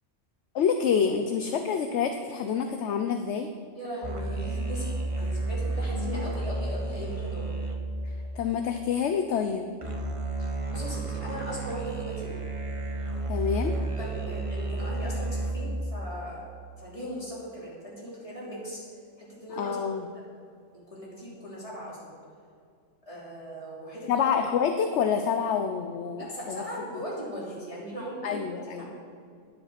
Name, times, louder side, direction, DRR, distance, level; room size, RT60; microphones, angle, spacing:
voice 1, 0.5-3.5 8.3-9.7 13.3-13.7 19.6-20.1 24.1-26.6 28.2-28.9, left 7 dB, 70° left, 7 dB, 0.9 m, -27 dB
voice 2, 3.7-7.5 10.4-12.3 13.8-16.4 16.8-18.8 19.2-19.8 20.7-22.2 23.1-24.2 26.2-28.9, equal, 25° left, -6 dB, 3.4 m, -38 dB
sound 1, 4.0-9.0 9.8-15.8, right 2 dB, 30° right, 1.0 m, -32 dB
10.0 x 10.0 x 5.8 m, 2.3 s
omnidirectional pair, 1.3 m